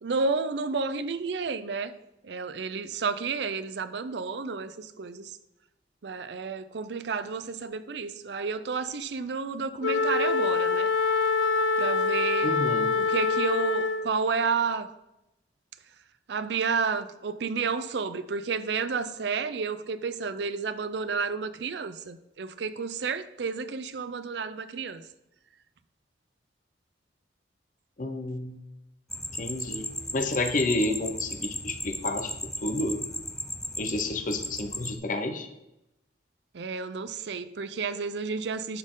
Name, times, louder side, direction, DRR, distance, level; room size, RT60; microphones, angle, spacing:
voice 1, 0.0-1.9 2.2-5.4 6.0-10.9 11.8-12.5 12.9-14.9 16.3-25.0 36.5-38.8, right 5 dB, 70° right, 12 dB, 0.5 m, -31 dB
Wind instrument woodwind instrument, 9.8-14.2, left 4 dB, 90° left, 0.5 m, -25 dB
voice 2, 12.4-12.9 28.0-28.6 29.3-32.3 32.6-33.0 33.8-35.5, left 2 dB, 45° left, 6 dB, 0.8 m, -30 dB
sound 1, 29.1-34.9, left 1 dB, 5° left, 0.4 m, -36 dB
11.0 x 4.2 x 3.8 m, 0.90 s
head